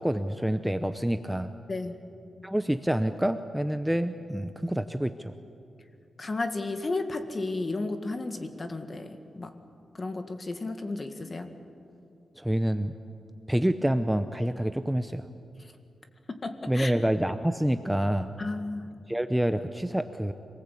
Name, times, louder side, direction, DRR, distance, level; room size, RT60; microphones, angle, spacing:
voice 1, 0.0-1.5 2.4-5.3 12.4-12.9 13.5-15.2 16.7-18.3 19.1-20.3, right 1 dB, 5° right, 9 dB, 0.7 m, -27 dB
voice 2, 6.2-9.1 9.3-9.5 10.0-11.5 16.3-16.9 18.4-18.9, left 2 dB, 35° left, 7 dB, 1.9 m, -33 dB
26.0 x 19.5 x 8.4 m, 2.6 s
wide cardioid pair, 110°, 0 cm